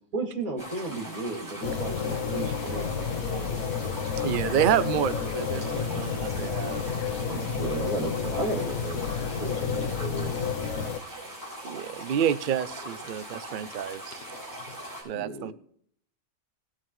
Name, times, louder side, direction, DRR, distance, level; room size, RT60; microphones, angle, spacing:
voice 1, 0.1-3.6 5.5-6.0 7.3-10.3 13.6-13.7 15.1-15.5, right 3 dB, 85° right, 3.1 m, -35 dB
sound 1, 0.6-15.0, right 1 dB, 15° right, 5.9 m, -41 dB
sound 2, 1.6-11.0, left 6 dB, 85° left, 1.3 m, -30 dB
voice 2, 4.2-7.2 11.6-14.2 15.0-15.5, right 9 dB, 55° right, 0.6 m, -29 dB
voice 3, 13.1-14.8, left 6 dB, 55° left, 0.9 m, -53 dB
19.5 x 8.5 x 3.1 m
omnidirectional pair, 1.4 m